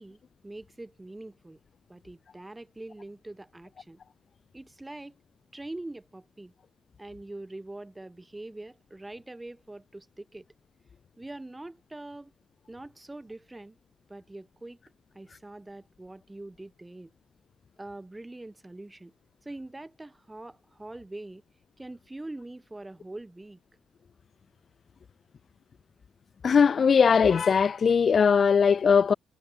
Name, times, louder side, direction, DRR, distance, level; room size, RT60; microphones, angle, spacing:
voice 1, 0.0-1.6 1.9-4.0 4.5-5.2 5.5-6.5 7.0-10.5 11.2-12.3 12.7-13.8 14.1-14.8 15.1-17.1 17.8-19.1 19.4-21.4 21.8-23.6, right 2 dB, 15° right, 3.1 m, -43 dB
voice 2, 26.4-29.1, left 6 dB, 45° left, 0.5 m, -20 dB
cardioid pair, 90°, 0 cm